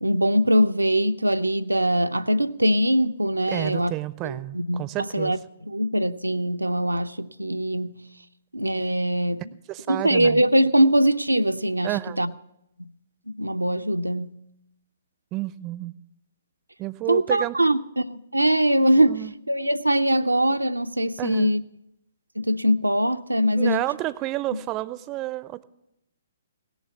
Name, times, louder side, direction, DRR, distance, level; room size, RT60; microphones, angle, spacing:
voice 1, 0.0-3.9 4.2-5.4 5.7-8.1 8.5-9.5 9.9-12.3 13.3-14.4 17.1-21.6 22.4-23.8, right 1 dB, 85° right, 0.5 m, -22 dB
voice 2, 3.5-5.3 9.7-10.4 11.8-12.3 15.3-15.9 16.8-17.5 19.1-19.3 21.2-21.5 23.6-25.6, right 17 dB, 25° right, 0.5 m, -30 dB
17.5 x 7.1 x 6.8 m
figure-of-eight pair, 125°, 0 cm